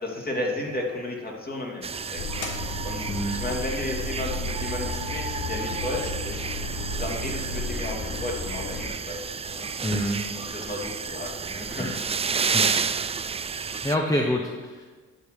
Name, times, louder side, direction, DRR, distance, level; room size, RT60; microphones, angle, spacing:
voice 1, 0.0-2.5 2.8-6.5 7.0-9.7 10.3-11.9 12.3-12.4 14.1-14.2, left 2 dB, 30° left, -1 dB, 2.5 m, -33 dB
sound 1, 1.8-14.0, right 6 dB, 20° right, 0.3 m, -31 dB
Cat meowing, 2.2-8.9, left 2 dB, 75° left, 1.4 m, -33 dB
voice 2, 9.8-10.2 11.8-12.0 12.5-12.7 13.8-14.9, left 1 dB, 10° left, 1 dB, 0.9 m, -27 dB
12.0 x 4.9 x 6.6 m, 1.4 s
cardioid pair, 90°, 30 cm